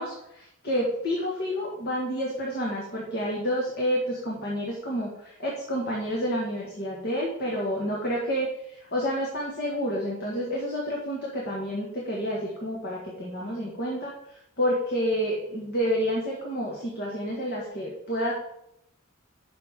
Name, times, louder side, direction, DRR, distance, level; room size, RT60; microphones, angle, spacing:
voice 1, 0.0-14.1 14.6-18.4, equal, 55° left, -3 dB, 1.9 m, -29 dB
10.5 x 6.7 x 3.7 m, 0.78 s
head